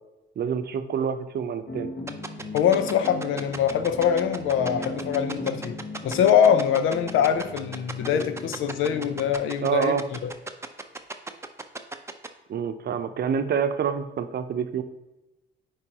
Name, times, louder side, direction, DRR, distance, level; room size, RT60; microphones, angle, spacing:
voice 1, 0.4-1.9 9.6-10.0 12.5-14.8, right 7 dB, 55° right, 0.7 m, -27 dB
sound 1, 1.7-9.4, left 2 dB, 50° left, 1.2 m, -37 dB
sound 2, 2.1-12.3, right 3 dB, 15° right, 0.6 m, -35 dB
voice 2, 2.5-5.7 6.0-10.3, left 8 dB, 85° left, 0.6 m, -23 dB
9.6 x 4.5 x 2.9 m
cardioid pair, 90°, 20 cm